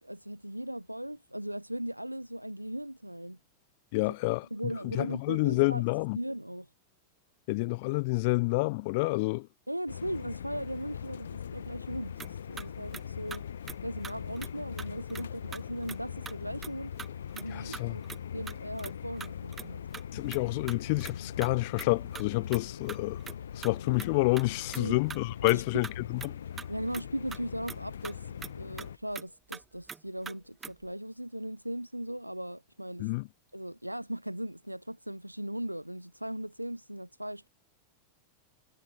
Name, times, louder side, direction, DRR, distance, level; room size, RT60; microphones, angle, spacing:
voice 1, 0.0-3.4 4.5-5.8 6.1-6.7 9.7-12.1 12.5-13.5 13.8-16.9 17.3-19.8 24.8-25.0 25.4-25.8 26.7-33.1 33.5-37.5, right 1 dB, 90° right, 5.0 m, -38 dB
voice 2, 3.9-4.5 4.8-6.2 7.5-9.5 17.5-18.0 20.1-23.2 23.5-26.4 33.0-33.3, left 26 dB, 50° left, 1.5 m, -29 dB
sound 1, 9.9-29.0, left 8 dB, 65° left, 5.4 m, -41 dB
sound 2, 12.2-12.3 12.6-12.7 12.9-13.0 13.3-13.4 13.7-13.8 14.0-14.5 14.8-15.2 15.5-16.0 16.3-16.4 16.6-16.7 17.0-17.5 17.7-19.7 19.9-20.4 20.7-21.5 21.8-21.9 22.1-23.4 23.6-24.8 25.1-25.2 25.5-25.6 25.8-26.3 26.6-27.0 27.3-27.4 27.7-27.8 28.0-28.1 28.4-29.3 29.5-29.6 29.9-30.0 30.3-30.4 30.6-30.9, right 6 dB, 20° right, 3.5 m, -42 dB
figure-of-eight pair, 90°, 0 cm